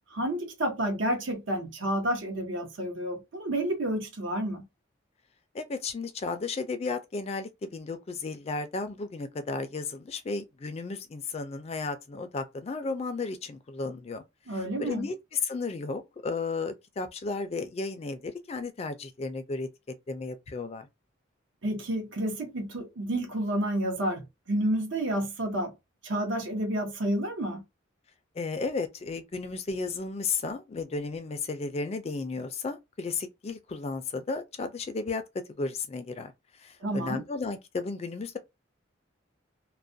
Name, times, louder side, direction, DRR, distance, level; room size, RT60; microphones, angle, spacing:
voice 1, 0.1-4.6 14.5-15.1 21.6-25.7 26.0-27.6 36.8-37.2, right 1 dB, 70° right, 0.7 m, -30 dB
voice 2, 5.5-14.2 14.5-19.7 20.1-20.9 28.4-35.2 35.6-36.3 36.6-38.4, left 4 dB, 30° left, 0.3 m, -34 dB
2.3 x 2.1 x 2.6 m
head